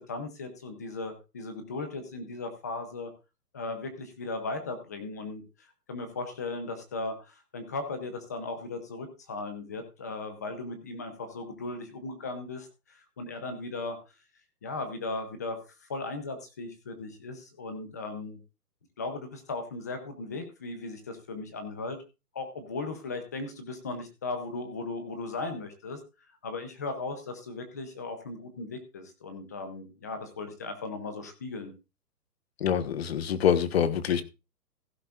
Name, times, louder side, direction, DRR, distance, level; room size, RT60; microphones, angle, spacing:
voice 1, 0.1-3.1 3.5-14.0 14.6-18.4 19.0-22.0 22.3-26.0 26.4-31.7, left 3 dB, 10° left, 0.6 m, -37 dB
voice 2, 32.6-34.2, left 8 dB, 40° left, 1.3 m, -25 dB
15.5 x 11.5 x 2.5 m
hypercardioid pair, 165°, 48 cm